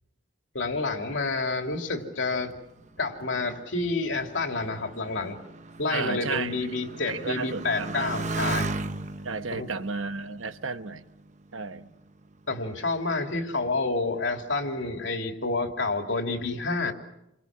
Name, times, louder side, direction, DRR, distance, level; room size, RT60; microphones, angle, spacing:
voice 1, 0.5-2.5 3.0-5.4 5.8-8.7 9.5-9.7 12.5-16.9, left 3 dB, 70° left, 2.8 m, -29 dB
Motorcycle, 2.6-11.6 12.3-12.9, right 3 dB, 35° right, 0.8 m, -37 dB
voice 2, 5.9-6.7 7.1-8.2 9.2-11.0 11.5-11.8, right 4 dB, 90° right, 1.2 m, -33 dB
29.0 x 23.5 x 6.1 m
head